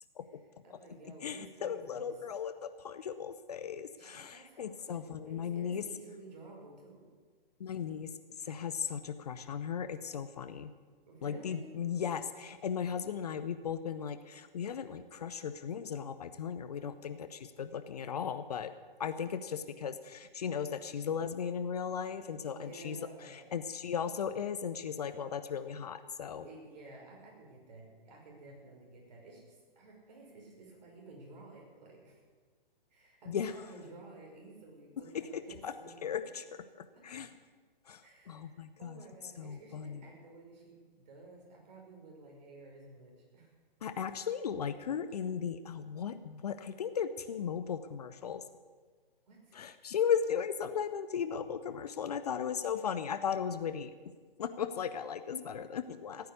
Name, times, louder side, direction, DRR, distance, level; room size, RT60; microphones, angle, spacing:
voice 1, 0.6-2.1 3.9-7.1 11.1-11.7 22.5-23.4 26.4-32.2 32.9-36.0 36.9-37.3 38.0-43.5 49.3-49.6, right 2 dB, 45° right, -1 dB, 5.4 m, -53 dB
voice 2, 1.2-5.9 7.6-10.7 11.2-18.7 19.0-26.4 33.3-33.5 35.1-35.7 36.0-36.4 36.8-37.3 37.9-38.0 38.3-39.0 39.4-40.0 43.8-48.4 49.5-53.9 54.4-56.3, left 7 dB, 40° left, 11 dB, 0.7 m, -36 dB
15.5 x 9.6 x 8.5 m, 1.5 s
figure-of-eight pair, 125°, 29 cm